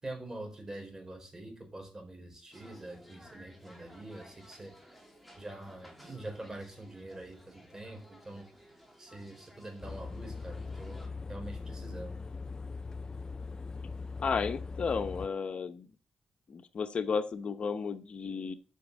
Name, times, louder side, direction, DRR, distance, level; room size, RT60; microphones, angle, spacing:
voice 1, 0.0-4.7 5.4-8.5 9.0-12.2, right 1 dB, 25° right, 3 dB, 4.3 m, -45 dB
sound 1, 2.5-11.1, equal, ahead, 3.0 m, -56 dB
sound 2, 9.8-15.3, left 4 dB, 35° left, 0.4 m, -40 dB
voice 2, 14.2-15.9 16.5-18.5, left 5 dB, 55° left, 10 dB, 0.8 m, -33 dB
8.4 x 6.1 x 7.5 m, 0.38 s
cardioid pair, 85°, 2 cm